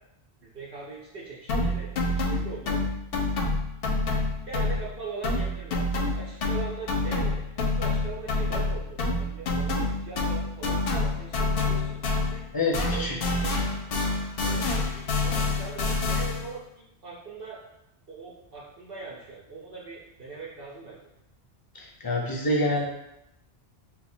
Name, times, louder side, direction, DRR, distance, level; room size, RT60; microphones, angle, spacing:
voice 1, 0.4-2.8 4.0-4.2 4.5-12.4 12.9-13.5 14.4-17.6 18.1-21.0, right 4 dB, 60° right, -5 dB, 0.8 m, -41 dB
sound 1, 1.5-5.0 5.2-12.5 12.7-16.5, left 2 dB, 65° left, 0.7 m, -27 dB
voice 2, 12.5-13.2 21.7-22.9, left 1 dB, 30° left, -2 dB, 0.4 m, -27 dB
2.8 x 2.3 x 4.2 m, 0.84 s
omnidirectional pair, 1.1 m